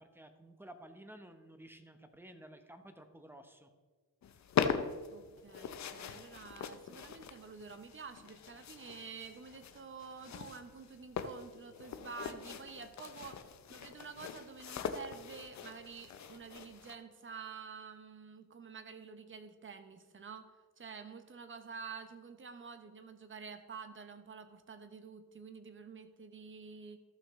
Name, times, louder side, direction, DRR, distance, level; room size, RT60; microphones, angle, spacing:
voice 1, 0.0-3.7, right 1 dB, 5° right, 7 dB, 0.9 m, -53 dB
sound 1, 4.2-17.0, left 7 dB, 55° left, 0.7 m, -41 dB
voice 2, 5.1-20.5 20.8-27.0, right 5 dB, 35° right, 9 dB, 0.9 m, -49 dB
13.5 x 6.0 x 3.7 m, 1.4 s
cardioid pair, 95°, 33 cm